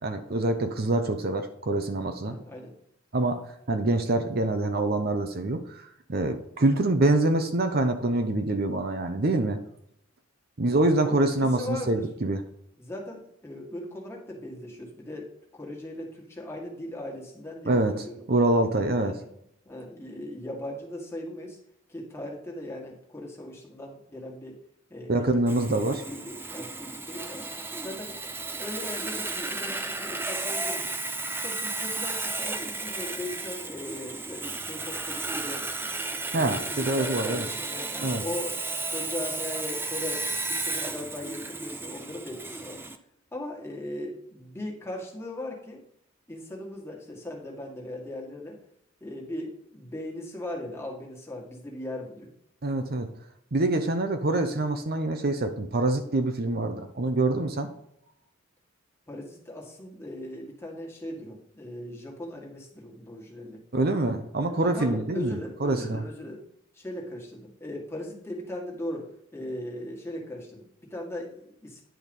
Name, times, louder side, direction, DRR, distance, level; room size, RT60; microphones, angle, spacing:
voice 1, 0.0-2.4 3.1-9.6 10.6-12.4 17.7-19.1 25.1-26.0 36.3-37.5 38.0-38.2 52.6-53.1 53.5-57.7 63.7-66.0, right 2 dB, 45° right, 7 dB, 0.8 m, -25 dB
voice 2, 2.2-2.7 11.0-12.1 12.8-18.2 19.0-19.4 19.6-21.6 21.9-24.6 24.9-27.5 27.8-28.2 28.6-30.9 31.4-35.6 36.3-38.6 38.9-42.8 43.3-45.8 46.3-48.6 49.0-52.3 59.1-63.6 64.6-66.4 66.7-71.8, left 1 dB, 10° left, -1 dB, 1.8 m, -38 dB
Sawing, 25.5-43.0, right 3 dB, 10° right, 0.5 m, -33 dB
10.0 x 4.6 x 5.3 m, 0.73 s
head